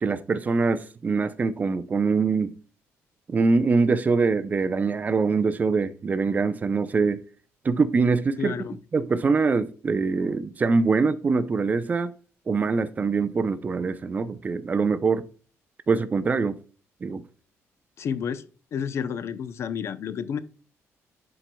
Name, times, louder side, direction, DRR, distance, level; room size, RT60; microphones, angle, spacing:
voice 1, 0.0-2.5 3.3-7.2 7.6-8.5 8.9-12.1 12.5-15.2 15.9-16.6 17.0-17.2, right 4 dB, 30° right, 0.6 m, -23 dB
voice 2, 8.4-8.8 18.0-18.4 18.7-20.4, left 7 dB, 55° left, 0.6 m, -30 dB
11.0 x 4.5 x 2.3 m
cardioid pair, 120°, 5 cm